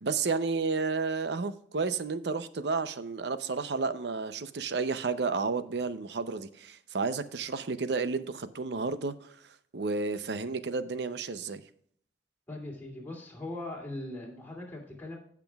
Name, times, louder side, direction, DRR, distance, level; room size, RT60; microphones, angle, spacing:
voice 1, 0.0-9.3 9.7-11.6, right 4 dB, 70° right, 12 dB, 0.7 m, -31 dB
voice 2, 12.5-15.2, left 1 dB, 10° left, -2 dB, 2.6 m, -40 dB
15.5 x 6.0 x 2.3 m, 0.64 s
head